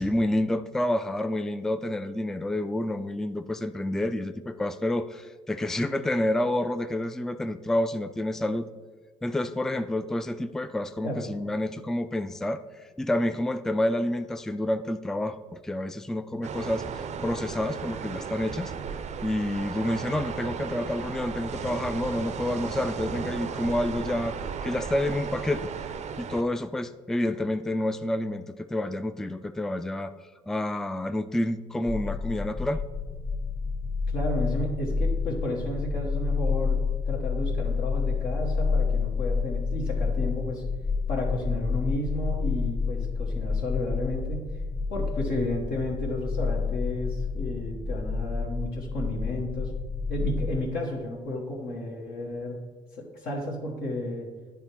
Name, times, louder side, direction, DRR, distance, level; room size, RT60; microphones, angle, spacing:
voice 1, 0.0-8.7 9.2-12.6 13.0-18.7 19.2-25.7 26.2-30.1 30.5-32.8, left 1 dB, 5° left, 11 dB, 0.3 m, -29 dB
sound 1, 16.4-26.4, right 6 dB, 45° right, 0.5 m, -35 dB
sound 2, 31.9-50.6, left 5 dB, 30° left, 0.7 m, -29 dB
voice 2, 34.1-36.8 37.1-40.6 41.1-44.5 44.9-49.7 50.1-52.6 53.0-54.3, left 1 dB, 70° left, -3 dB, 1.2 m, -32 dB
9.3 x 3.5 x 4.4 m, 1.4 s
hypercardioid pair, 55°, 16 cm